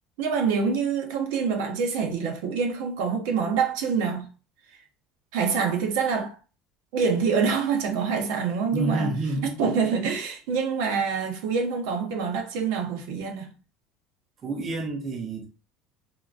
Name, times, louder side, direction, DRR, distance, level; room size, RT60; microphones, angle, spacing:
voice 1, 0.2-4.3 5.3-6.4 6.9-9.1 9.4-13.5, right 5 dB, 75° right, 0.7 m, -26 dB
voice 2, 8.7-9.5 14.4-15.5, right 2 dB, 25° right, 0.5 m, -28 dB
3.7 x 2.2 x 2.4 m
cardioid pair, 170°, 0 cm